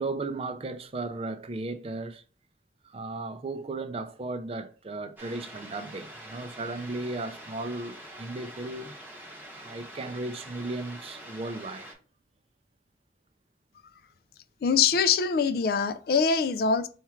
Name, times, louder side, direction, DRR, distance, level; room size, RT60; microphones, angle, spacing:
voice 1, 0.0-2.2 2.8-8.9 9.6-11.9, right 2 dB, 30° right, 0.4 m, -35 dB
sound 1, 5.2-11.9, right 1 dB, 10° right, 0.8 m, -45 dB
voice 2, 14.6-16.9, left 5 dB, 55° left, 0.3 m, -23 dB
4.4 x 2.4 x 4.3 m
head